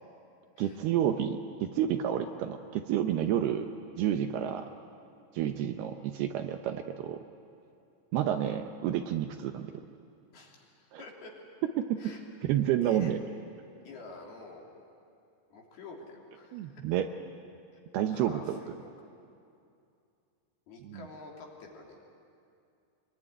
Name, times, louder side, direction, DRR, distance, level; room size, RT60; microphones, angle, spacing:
voice 1, 0.6-3.7 4.0-4.7 5.3-7.2 8.1-9.7 10.9-11.0 11.8-12.1 12.4-13.2 16.5-17.1 17.9-18.7 20.8-21.1, right 10 dB, 75° right, 6 dB, 2.5 m, -30 dB
voice 2, 10.3-11.3 12.0-12.2 12.8-13.2 13.8-14.7 15.5-16.8 18.1-18.9 20.7-22.0, left 3 dB, 60° left, -1 dB, 5.0 m, -48 dB
26.5 x 21.5 x 9.9 m, 2.5 s
omnidirectional pair, 5.1 m